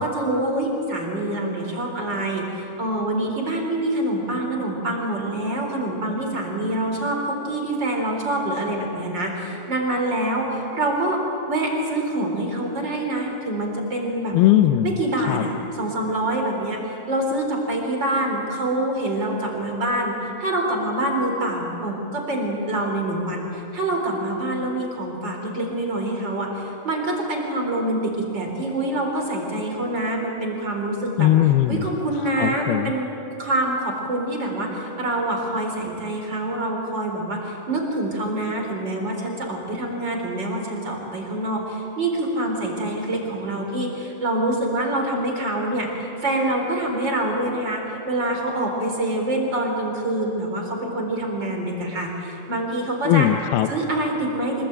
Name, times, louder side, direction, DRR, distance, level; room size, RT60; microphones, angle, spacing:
voice 1, 0.0-11.2 11.5-14.4 14.8-31.3 31.7-33.1 33.4-53.3 53.7-54.7, right 1 dB, 30° right, 1 dB, 4.5 m, -26 dB
voice 2, 14.3-15.0 15.3-15.5 31.2-31.9 32.4-32.9 53.1-53.7, left 13 dB, 80° left, 9 dB, 2.6 m, -19 dB
25.5 x 22.0 x 9.0 m, 3.0 s
omnidirectional pair, 4.4 m